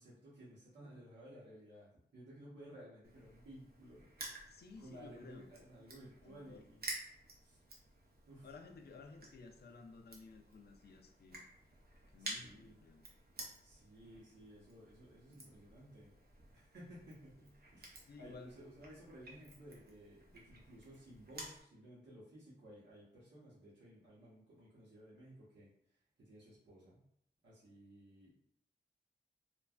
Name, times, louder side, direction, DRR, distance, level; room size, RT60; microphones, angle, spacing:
voice 1, 0.0-4.0 4.8-6.8 7.4-7.6 8.3-8.5 12.2-12.7 13.6-16.1 16.5-17.8 18.2-25.7 26.2-27.0 27.4-28.3, right 1 dB, 80° right, -9 dB, 1.0 m, -56 dB
Crushing, 3.0-21.6, right 2 dB, 60° right, 0.7 m, -52 dB
voice 2, 4.4-5.5 6.2-6.7 8.4-11.4 12.1-13.0 15.3-15.4 18.1-18.5, left 4 dB, 60° left, 4 dB, 0.4 m, -55 dB
3.1 x 2.2 x 2.4 m, 0.70 s
wide cardioid pair, 95°, 19 cm